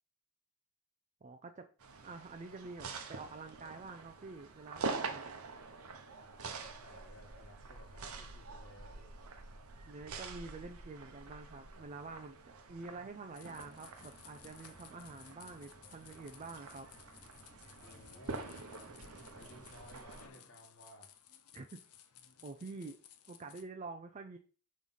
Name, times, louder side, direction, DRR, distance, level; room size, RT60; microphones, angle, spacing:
voice 1, 1.2-1.7 2.0-5.3 9.9-17.2 21.5-21.8 22.4-23.0 23.3-24.4, right 3 dB, 30° right, 6 dB, 0.4 m, -48 dB
sound 1, 1.8-20.3, right 4 dB, 75° right, 0.8 m, -46 dB
voice 2, 6.2-9.2 17.6-18.5 19.3-21.1, equal, 55° left, -1 dB, 1.2 m, -58 dB
sound 2, 13.3-23.6, left 9 dB, 85° left, 0.7 m, -59 dB
sound 3, 13.5-19.6, left 1 dB, 15° left, 1.1 m, -61 dB
5.3 x 3.2 x 5.5 m, 0.38 s
head